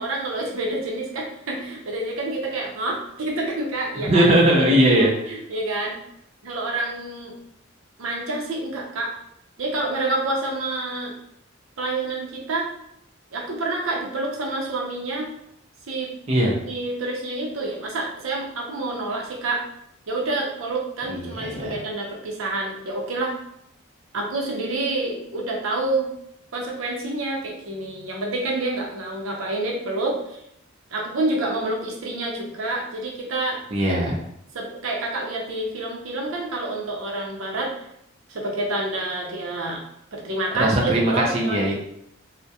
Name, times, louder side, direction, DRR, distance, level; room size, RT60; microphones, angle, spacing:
voice 1, 0.0-4.3 4.6-4.8 5.3-5.9 6.4-7.3 8.0-9.1 9.6-11.1 11.8-12.7 13.3-15.3 15.9-16.1 16.7-19.7 20.1-23.4 24.1-26.1 26.5-30.4 30.9-33.6 34.5-37.7 38.3-39.8 40.1-41.7, right 2 dB, 85° right, -1 dB, 0.6 m, -28 dB
voice 2, 4.1-5.4 16.3-16.5 21.1-21.7 33.7-34.2 40.6-41.7, right 1 dB, 30° right, -3 dB, 0.4 m, -19 dB
2.3 x 2.1 x 2.7 m, 0.75 s
head